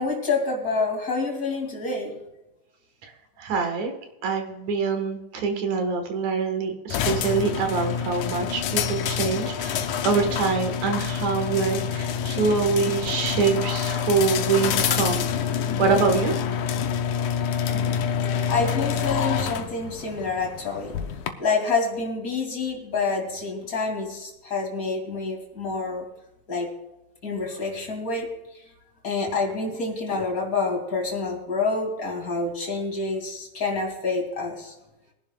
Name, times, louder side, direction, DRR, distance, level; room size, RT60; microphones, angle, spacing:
voice 1, 0.0-2.2 17.7-17.9 18.5-21.0 21.4-26.1 26.5-26.7 27.2-28.3 29.0-34.7, left 4 dB, 30° left, 1 dB, 2.6 m, -27 dB
voice 2, 3.4-3.9 4.2-15.2 15.8-16.3, right 5 dB, 65° right, 5 dB, 2.6 m, -25 dB
sound 1, 6.9-21.3, left 8 dB, 75° left, 2.3 m, -27 dB
22.5 x 11.0 x 2.3 m, 0.93 s
omnidirectional pair, 3.6 m